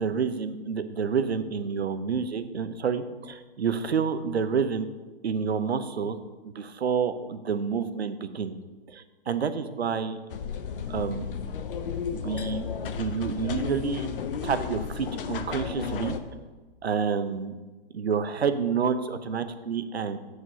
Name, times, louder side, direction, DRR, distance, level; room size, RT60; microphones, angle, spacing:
voice 1, 0.0-4.9 5.2-6.2 6.4-8.6 8.9-10.2 10.9-11.3 12.1-14.1 14.4-16.2 16.8-17.6 17.9-20.2, right 6 dB, 80° right, 10 dB, 0.9 m, -29 dB
sound 1, 10.3-16.2, left 6 dB, 60° left, 0.9 m, -33 dB
7.5 x 6.4 x 6.2 m, 1.3 s
hypercardioid pair, 135°, 31 cm